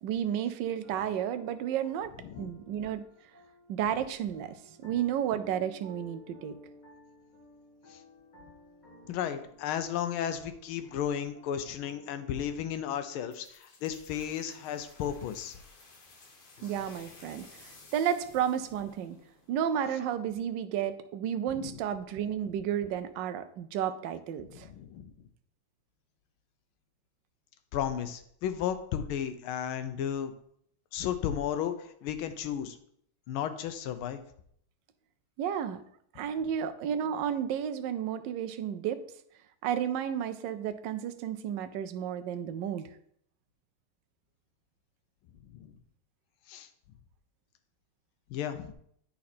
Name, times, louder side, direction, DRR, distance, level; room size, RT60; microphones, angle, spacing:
voice 1, 0.0-3.0 3.7-6.6 16.6-19.2 19.5-24.7 35.4-35.8 36.1-39.0 39.6-42.9, right 9 dB, 75° right, 10 dB, 1.1 m, -32 dB
sound 1, 0.6-12.7, left 1 dB, 20° left, 1.8 m, -56 dB
voice 2, 9.1-15.6 21.5-21.8 24.4-25.1 27.7-30.3 30.9-32.8 33.3-34.2 45.5-45.8 46.5-46.7 48.3-48.7, left 9 dB, 80° left, 9 dB, 1.5 m, -34 dB
sound 2, 13.3-19.9, left 3 dB, 50° left, 0.6 m, -55 dB
8.6 x 4.2 x 4.2 m, 0.67 s
omnidirectional pair, 2.3 m